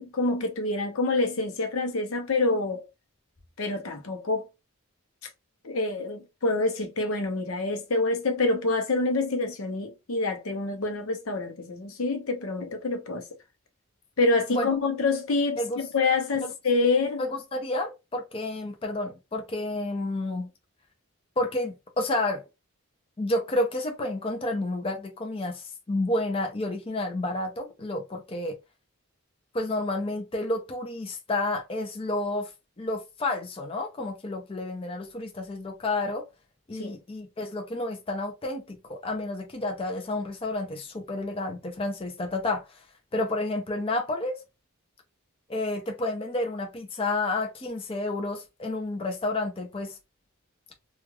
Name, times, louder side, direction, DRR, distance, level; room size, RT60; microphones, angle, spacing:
voice 1, 0.0-2.9 3.6-4.5 5.6-13.3 14.2-15.6 15.9-17.2 36.7-36.9, left 3 dB, 75° left, 0.7 m, -26 dB
voice 2, 17.2-20.5 21.4-22.4 23.2-28.5 29.5-32.5 32.8-36.3 36.7-42.7 43.1-44.4 45.5-50.0, left 2 dB, 25° left, 0.5 m, -30 dB
3.1 x 2.3 x 2.3 m
head